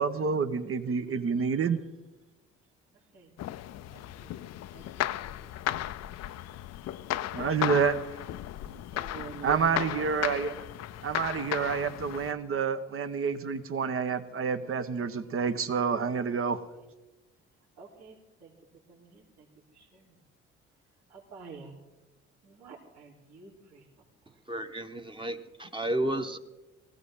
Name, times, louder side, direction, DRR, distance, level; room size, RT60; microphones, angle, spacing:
voice 1, 0.0-1.8 7.3-8.0 9.4-10.5 11.0-16.6, right 6 dB, 45° right, 10 dB, 1.2 m, -28 dB
sound 1, 3.4-12.3, left 13 dB, 60° left, 0.5 m, -35 dB
voice 2, 3.9-4.4 4.7-6.3 8.9-10.0 11.2-11.8 16.5-16.9 17.8-18.5 18.9-20.2 21.1-21.7 22.4-23.9 24.2-24.4, right 4 dB, 65° right, -6 dB, 3.8 m, -49 dB
voice 3, 24.5-26.4, right 1 dB, 15° right, 6 dB, 1.3 m, -32 dB
19.0 x 15.5 x 3.8 m, 1.1 s
supercardioid pair, 60°, 29 cm